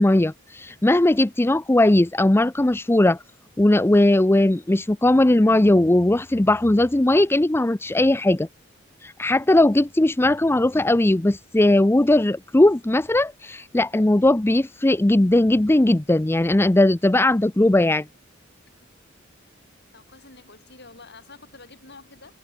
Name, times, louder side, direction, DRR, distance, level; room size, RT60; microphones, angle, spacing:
voice 1, 0.0-3.2 3.6-8.5 9.0-18.1, left 1 dB, 10° left, 0.5 m, -18 dB
voice 2, 19.9-22.3, left 3 dB, 55° left, 7.3 m, -47 dB
head